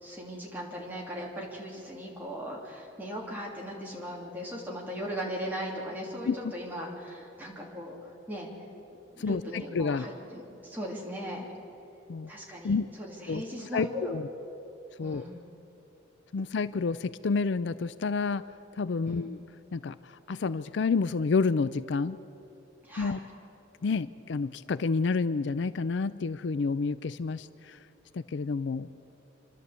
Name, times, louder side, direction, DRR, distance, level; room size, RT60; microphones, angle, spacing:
voice 1, 0.0-7.9 8.3-8.5 9.1-11.5 12.3-14.2 15.0-15.4 19.0-19.3 22.8-23.2, equal, 10° right, -3 dB, 3.2 m, -38 dB
voice 2, 9.2-10.1 12.1-12.3 12.6-12.9 13.3-13.4 13.7-14.2 15.0-15.2 16.3-18.4 18.8-19.4 19.7-22.2 23.0-23.2 23.8-27.8 28.1-28.9, left 4 dB, 60° left, 15 dB, 0.4 m, -29 dB
27.5 x 12.5 x 8.2 m, 2.9 s
head